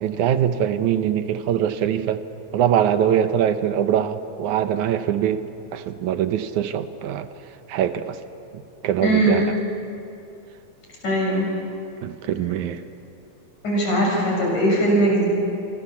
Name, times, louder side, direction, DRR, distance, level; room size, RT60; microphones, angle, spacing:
voice 1, 0.0-2.2 2.5-7.3 7.7-8.2 8.5-9.5 12.0-12.8, right 10 dB, 80° right, 10 dB, 2.4 m, -23 dB
voice 2, 9.0-9.5 11.0-11.5 13.6-15.3, right 1 dB, 75° left, -2 dB, 8.1 m, -20 dB
28.0 x 23.5 x 7.2 m, 2.7 s
omnidirectional pair, 3.5 m